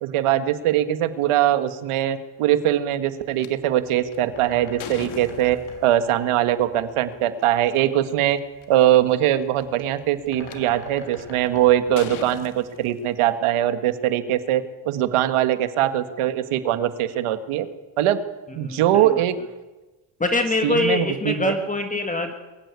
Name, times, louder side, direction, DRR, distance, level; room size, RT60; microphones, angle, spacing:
voice 1, 0.0-8.4 8.7-17.7 18.0-18.2 18.5-19.3 20.6-21.5, right 12 dB, 85° right, 11 dB, 1.7 m, -21 dB
sound 1, 3.4-3.5 4.1-6.0 7.2-7.4 8.1-8.2 8.4-8.8 9.6-10.5 11.2-11.5 12.0-13.4, left 8 dB, 70° left, 2.4 m, -39 dB
Bird, 3.5-12.7, left 3 dB, 50° left, 6.0 m, -45 dB
voice 2, 18.6-19.2 20.2-22.3, left 2 dB, 15° left, 5 dB, 1.6 m, -24 dB
22.5 x 15.0 x 9.6 m, 1.2 s
cardioid pair, 150°, 49 cm